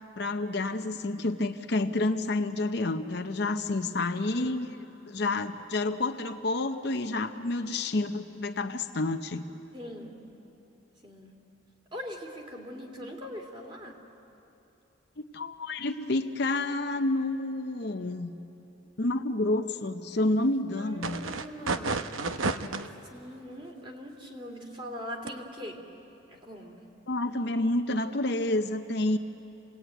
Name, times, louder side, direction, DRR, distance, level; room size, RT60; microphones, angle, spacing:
voice 1, 0.0-4.7 5.1-9.4 15.3-18.3 19.0-21.2 27.1-29.2, left 2 dB, 55° left, 6 dB, 0.8 m, -29 dB
voice 2, 9.7-10.1 11.0-11.3 11.9-14.0 20.8-22.1 23.1-25.8 26.3-26.8, equal, 25° right, 2 dB, 2.8 m, -41 dB
sound 1, 21.0-22.9 25.3-25.4, right 3 dB, 85° right, 0.9 m, -30 dB
28.5 x 19.0 x 9.2 m, 2.9 s
head